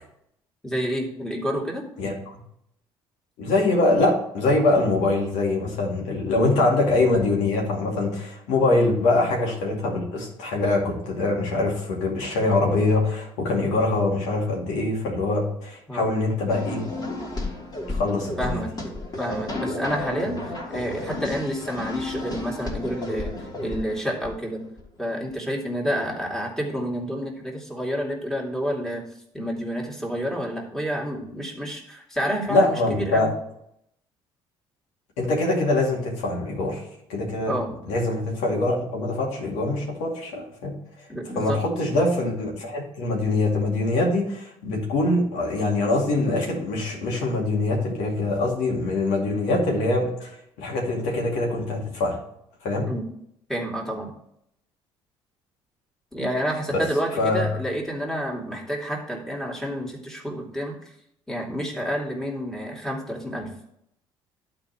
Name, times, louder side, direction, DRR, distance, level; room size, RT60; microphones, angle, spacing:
voice 1, 0.6-1.9 8.7-8.8 15.9-16.1 18.4-18.7 19.2-24.6 25.0-29.1 29.3-33.3 37.5-37.7 41.1-41.6 52.9-53.0 53.5-54.1 56.1-60.8 61.3-63.6, equal, 5° left, -2 dB, 2.7 m, -29 dB
voice 2, 2.0-2.4 3.4-16.9 17.9-18.6 32.5-33.3 35.2-36.8 37.1-37.6 37.9-40.8 41.3-52.2 52.6-52.9 56.7-56.9 57.2-57.5, left 2 dB, 75° left, -1 dB, 2.4 m, -23 dB
sound 1, 16.5-24.8, left 2 dB, 35° left, 3.1 m, -33 dB
11.5 x 4.4 x 4.5 m, 0.75 s
hypercardioid pair, 60°, 12 cm